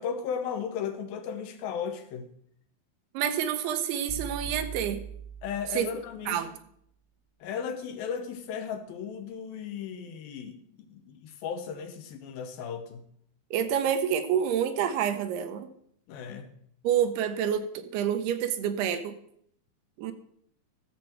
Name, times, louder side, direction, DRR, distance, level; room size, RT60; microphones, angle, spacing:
voice 1, 0.0-2.3 5.4-6.5 7.4-10.6 10.9-13.0 16.1-16.6, left 7 dB, 75° left, 7 dB, 2.6 m, -35 dB
voice 2, 3.1-5.0 5.7-5.9 6.3-6.5 13.5-15.7 16.8-19.2 20.0-20.1, right 9 dB, 90° right, 9 dB, 2.9 m, -28 dB
sound 1, 4.1-6.2, right 7 dB, 30° left, 1.2 m, -40 dB
13.5 x 7.2 x 4.5 m, 0.68 s
omnidirectional pair, 4.4 m